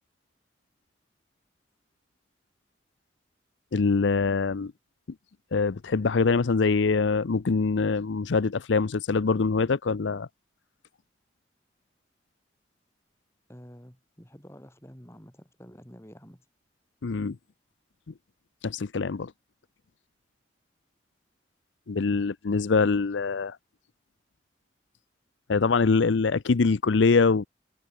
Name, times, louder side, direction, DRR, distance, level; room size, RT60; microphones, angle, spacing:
voice 1, 3.7-4.7 5.5-10.3 17.0-17.4 18.6-19.3 21.9-23.6 25.5-27.5, left 4 dB, 90° left, 0.6 m, -24 dB
voice 2, 13.5-16.5, equal, 15° left, 4.2 m, -49 dB
head